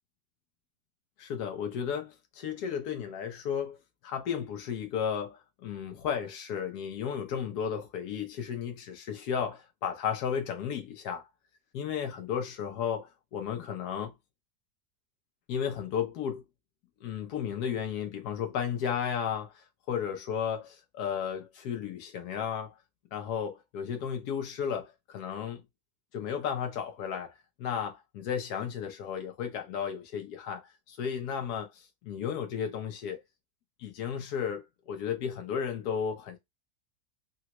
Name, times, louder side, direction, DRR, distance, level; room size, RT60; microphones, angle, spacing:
voice 1, 1.2-3.8 4.0-11.3 11.7-14.1 15.5-16.4 17.0-22.7 23.1-25.6 26.1-33.2 33.8-36.4, left 8 dB, 85° left, 1.2 m, -34 dB
3.8 x 2.1 x 2.9 m
omnidirectional pair, 1.6 m